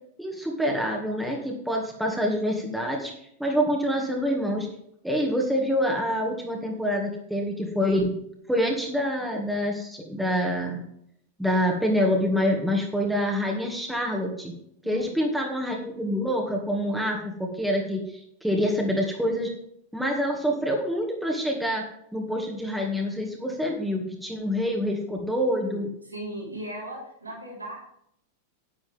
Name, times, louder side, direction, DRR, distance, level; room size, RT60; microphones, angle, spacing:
voice 1, 0.2-3.1 3.4-4.7 5.0-8.1 8.5-10.8 11.4-14.5 14.8-19.5 19.9-21.8 22.1-25.9, equal, ahead, -1 dB, 2.1 m, -26 dB
voice 2, 24.6-24.9 26.0-27.8, right 1 dB, 80° right, -3 dB, 4.0 m, -37 dB
10.5 x 9.8 x 3.6 m, 0.72 s
figure-of-eight pair, 90°, 0 cm